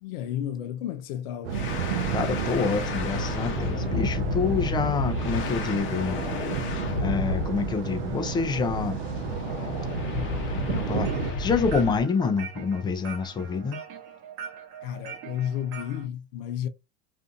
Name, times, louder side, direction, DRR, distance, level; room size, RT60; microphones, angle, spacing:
voice 1, 0.0-1.8 14.8-16.7, left 10 dB, 75° left, 0.5 m, -32 dB
sound 1, 1.4-11.3, right 9 dB, 85° right, 0.5 m, -32 dB
sound 2, 1.5-12.0, left 4 dB, 40° left, 0.7 m, -32 dB
voice 2, 2.1-6.2 7.0-9.0 10.5-11.1 11.4-13.8, left 5 dB, 15° left, 0.4 m, -27 dB
sound 3, 10.7-16.0, right 7 dB, 45° right, 0.8 m, -42 dB
2.6 x 2.5 x 2.5 m
supercardioid pair, 120°, 29 cm